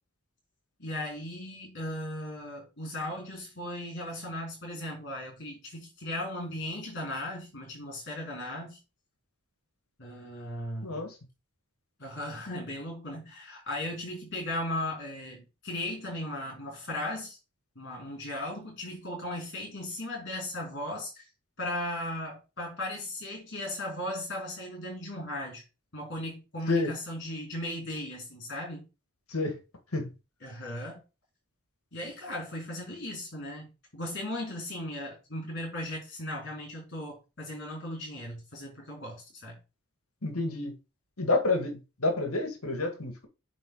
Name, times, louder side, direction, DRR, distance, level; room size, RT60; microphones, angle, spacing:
voice 1, 0.8-8.8 10.0-11.0 12.0-17.4 17.8-21.2 21.6-25.6 25.9-28.8 30.4-31.0 31.9-39.6, left 1 dB, 50° left, 4.4 m, -37 dB
voice 2, 10.8-11.2 26.7-26.9 29.3-29.6 29.9-30.1 40.2-40.7 41.2-43.3, left 2 dB, 80° left, 1.9 m, -29 dB
9.2 x 4.0 x 3.9 m
head